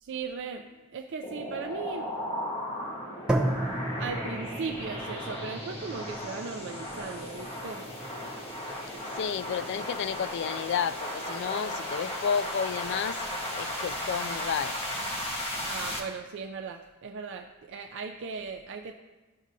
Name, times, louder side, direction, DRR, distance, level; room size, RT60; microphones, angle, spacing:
voice 1, 0.0-2.2 4.0-7.9 15.7-18.9, right 5 dB, 60° right, 3 dB, 0.4 m, -38 dB
sound 1, 1.2-16.0, left 1 dB, 30° left, 1.2 m, -36 dB
sound 2, 3.3-11.3, right 1 dB, 5° right, 0.8 m, -35 dB
voice 2, 9.1-13.2 13.5-14.8, left 7 dB, 55° left, 14 dB, 0.3 m, -31 dB
13.5 x 6.2 x 2.7 m, 1.2 s
head